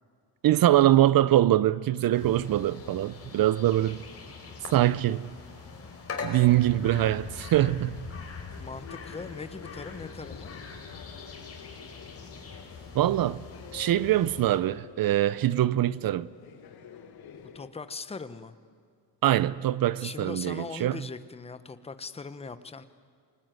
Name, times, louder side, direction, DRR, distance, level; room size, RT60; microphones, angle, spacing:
voice 1, 0.4-4.0 4.7-5.3 6.2-8.0 12.9-13.4 13.7-16.3 19.2-21.0, right 13 dB, 55° right, 0.6 m, -23 dB
sound 1, 2.1-14.6, left 4 dB, 35° left, 4.6 m, -42 dB
sound 2, 7.4-17.7, left 7 dB, 60° left, 1.9 m, -49 dB
voice 2, 8.6-10.5 17.3-18.5 20.0-22.8, left 4 dB, 15° left, 1.0 m, -40 dB
27.5 x 20.0 x 9.2 m
cardioid pair, 120°, 42 cm